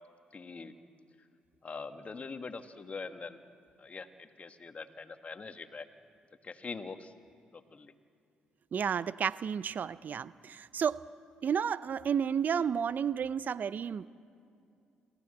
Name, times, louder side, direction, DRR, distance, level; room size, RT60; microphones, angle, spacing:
voice 1, 0.3-0.7 1.2-1.3 1.6-3.4 3.8-5.9 6.4-7.1 7.5-7.9, left 4 dB, 40° left, 8 dB, 1.5 m, -43 dB
voice 2, 8.7-11.0 11.4-14.1, right 7 dB, 50° right, 18 dB, 0.5 m, -31 dB
27.5 x 15.0 x 7.9 m, 2.5 s
supercardioid pair, 55°, 4 cm